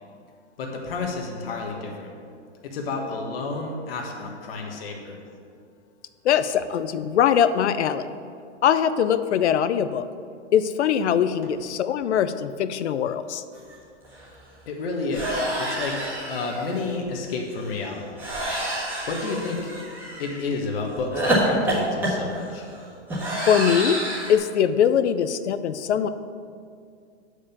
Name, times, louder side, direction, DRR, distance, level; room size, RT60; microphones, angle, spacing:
voice 1, 0.6-2.1 2.6-5.2 14.7-16.0 16.3-18.1 19.1-19.7 20.2-22.7, left 3 dB, 55° left, 0 dB, 1.4 m, -30 dB
voice 2, 6.2-8.1 8.6-10.0 10.5-13.4 23.5-24.0 24.3-26.1, left 8 dB, 70° left, 12 dB, 0.6 m, -22 dB
sound 1, 13.7-13.8 14.0-14.3 15.1-16.8 18.2-20.4 21.1-24.4, right 1 dB, 5° right, 1.5 m, -28 dB
8.7 x 5.0 x 7.0 m, 2.3 s
hypercardioid pair, 170°, 35 cm